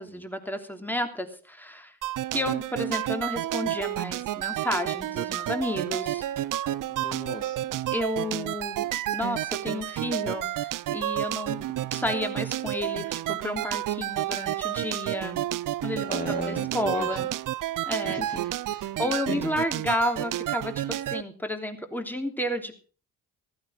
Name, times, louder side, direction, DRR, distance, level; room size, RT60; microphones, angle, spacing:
voice 1, 0.0-1.9 2.3-6.3 7.9-11.6 11.9-15.4 15.8-17.3 17.9-18.2 19.0-22.7, left 1 dB, 5° left, 5 dB, 3.1 m, -31 dB
sound 1, 2.0-21.2, right 13 dB, 60° right, 0.6 m, -30 dB
voice 2, 6.9-7.8 11.5-11.6 15.0-15.2 16.0-17.3 18.0-19.5, left 2 dB, 25° left, 3 dB, 2.0 m, -38 dB
15.0 x 12.5 x 4.9 m, 0.38 s
supercardioid pair, 55°, 35 cm